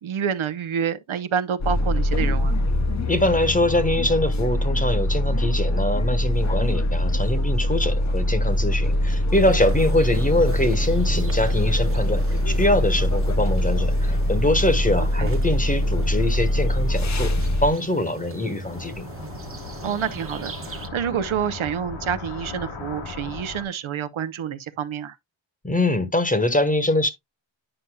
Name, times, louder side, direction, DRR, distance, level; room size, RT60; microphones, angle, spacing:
voice 1, 0.0-2.6 15.2-15.3 19.8-25.2, right 8 dB, 80° right, 0.8 m, -28 dB
sound 1, 1.6-17.7, left 1 dB, 35° left, 0.8 m, -23 dB
voice 2, 3.1-17.3 17.6-19.0 25.6-27.1, left 1 dB, 15° left, 1.1 m, -23 dB
sound 2, 9.3-20.9, right 4 dB, 25° right, 1.0 m, -39 dB
sound 3, 18.6-23.7, left 4 dB, 70° left, 1.5 m, -37 dB
10.0 x 5.5 x 2.2 m
wide cardioid pair, 100°, 48 cm